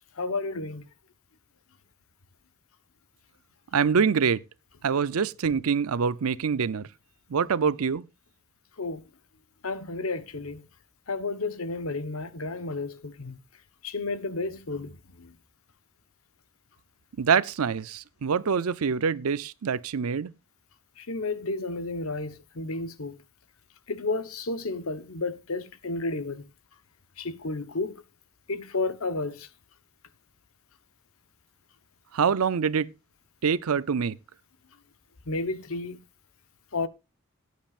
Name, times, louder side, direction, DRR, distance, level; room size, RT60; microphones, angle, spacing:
voice 1, 0.2-0.9 8.8-9.0 9.6-10.6 11.1-13.4 13.8-15.3 21.0-23.2 23.9-26.4 27.2-28.0 28.5-29.5 35.3-36.0 36.7-36.9, left 3 dB, 75° left, 1.1 m, -32 dB
voice 2, 3.7-4.4 4.8-6.9 7.3-8.1 17.2-20.3 32.1-32.9 33.4-34.2, right 6 dB, 85° right, 0.5 m, -25 dB
17.0 x 9.4 x 2.5 m
head